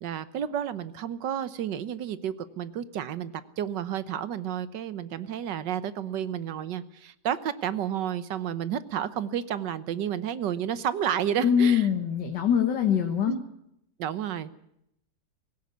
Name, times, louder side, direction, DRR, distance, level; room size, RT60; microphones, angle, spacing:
voice 1, 0.0-11.9 13.3-13.4 14.0-14.5, right 9 dB, 85° right, 14 dB, 1.6 m, -31 dB
voice 2, 11.4-13.3, left 8 dB, 80° left, 5 dB, 2.1 m, -23 dB
18.0 x 16.5 x 9.4 m, 0.79 s
omnidirectional pair, 1.8 m